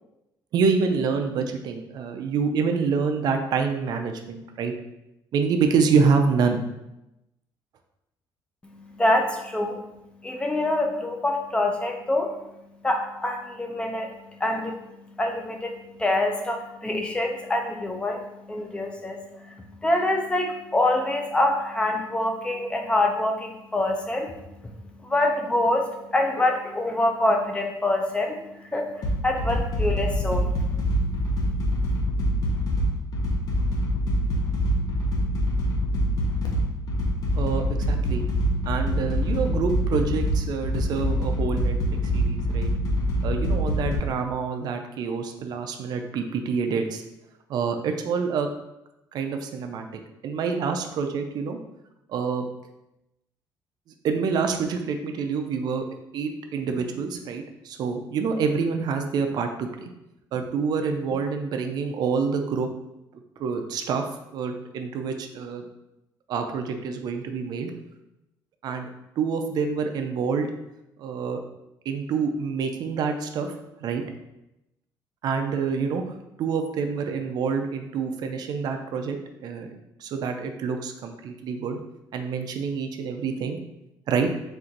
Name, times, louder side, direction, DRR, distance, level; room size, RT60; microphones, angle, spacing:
voice 1, 0.5-4.7 5.3-6.6 37.4-38.2 38.7-41.8 42.1-42.7 43.2-47.0 47.5-48.5 49.1-49.9 50.2-51.6 52.1-52.5 54.0-55.8 56.1-59.9 60.3-62.7 63.4-64.0 64.3-65.7 66.3-67.7 68.6-68.9 69.2-70.5 71.0-71.4 71.9-73.5 73.8-74.0 75.2-76.0 76.4-79.2 79.4-79.7 80.0-81.8 82.1-83.6 84.1-84.3, right 5 dB, 60° right, 5 dB, 0.4 m, -27 dB
voice 2, 8.6-9.8 10.2-12.3 12.8-24.7 25.0-30.5, left 1 dB, 15° left, 2 dB, 0.5 m, -26 dB
sound 1, 29.0-44.0, equal, 55° left, 0.8 m, -25 dB
4.4 x 2.5 x 3.9 m, 0.90 s
cardioid pair, 145°, 8 cm